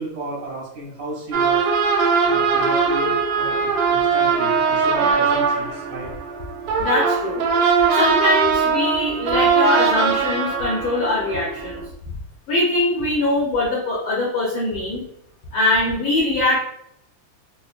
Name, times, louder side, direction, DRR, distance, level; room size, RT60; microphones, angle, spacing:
voice 1, 0.0-1.6 2.2-6.1, right 1 dB, 70° right, -6 dB, 2.0 m, -33 dB
sound 1, 1.3-11.9, right 5 dB, 90° right, 2.0 m, -20 dB
voice 2, 6.8-11.8 12.5-15.0 15.5-16.6, left 2 dB, 85° left, -4 dB, 1.1 m, -22 dB
4.8 x 2.2 x 2.4 m, 0.72 s
omnidirectional pair, 3.3 m